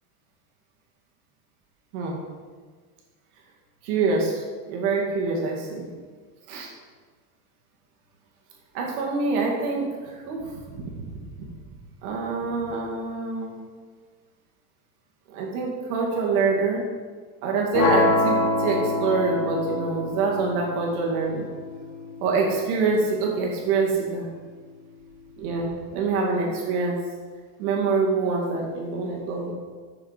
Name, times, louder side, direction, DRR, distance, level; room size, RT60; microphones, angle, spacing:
voice 1, 3.8-5.9 6.5-6.7 8.7-11.1 11.4-11.5 12.0-13.6 15.3-16.8 17.4-21.5 22.2-24.3 25.4-27.0 27.6-29.5, right 4 dB, 80° right, -1 dB, 2.2 m, -25 dB
sound 1, 17.7-23.8, left 2 dB, 75° left, 2.3 m, -27 dB
6.8 x 6.2 x 5.0 m, 1.5 s
supercardioid pair, 150°, 43 cm